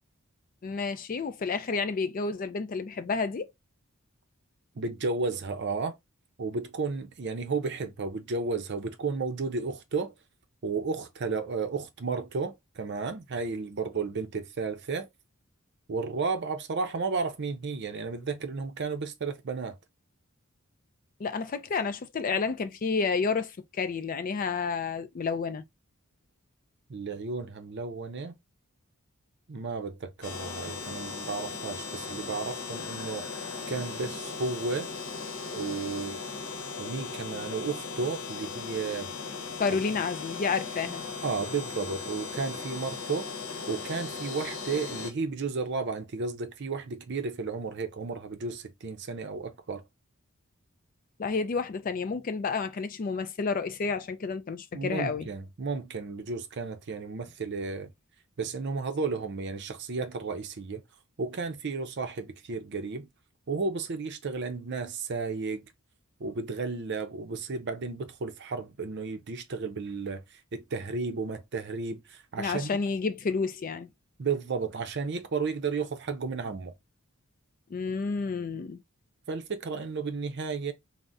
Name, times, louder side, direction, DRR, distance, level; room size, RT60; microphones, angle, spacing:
voice 1, 0.6-3.5 21.2-23.5 23.8-25.6 39.6-41.0 51.2-55.3 72.4-73.9 77.7-78.8, left 4 dB, 40° left, 0.4 m, -30 dB
voice 2, 4.8-6.0 6.4-10.1 10.6-15.1 15.9-19.7 26.9-28.4 29.5-33.3 33.7-34.9 35.5-36.2 36.8-39.1 41.2-43.3 43.7-49.8 54.7-57.9 58.4-60.8 61.2-63.1 63.5-65.6 66.2-70.2 70.5-72.7 74.2-76.7 79.3-80.7, right 4 dB, 55° right, 0.5 m, -33 dB
sound 1, 30.2-45.1, left 4 dB, 85° left, 0.8 m, -38 dB
3.5 x 2.1 x 2.5 m
head